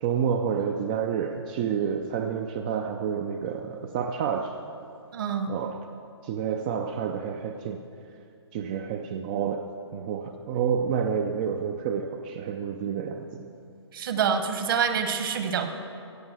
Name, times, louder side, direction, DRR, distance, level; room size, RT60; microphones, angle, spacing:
voice 1, 0.0-4.5 5.5-5.9 6.2-7.8 8.5-13.4, right 7 dB, 20° right, 5 dB, 0.3 m, -29 dB
voice 2, 5.1-5.5 13.9-15.7, right 7 dB, 50° right, 7 dB, 1.3 m, -26 dB
16.0 x 7.2 x 6.2 m, 2.5 s
hypercardioid pair, 155°, 15 cm